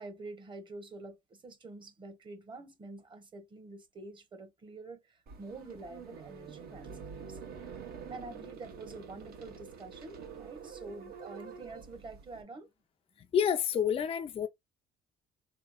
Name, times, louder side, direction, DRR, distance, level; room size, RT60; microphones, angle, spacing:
voice 1, 0.0-7.4 8.1-12.7, right 3 dB, 30° right, 1.0 m, -47 dB
sound 1, 5.3-12.4, right 6 dB, 70° right, 1.2 m, -47 dB
voice 2, 13.3-14.5, left 8 dB, 35° left, 0.4 m, -28 dB
3.8 x 3.0 x 2.3 m
cardioid pair, 110°, 17 cm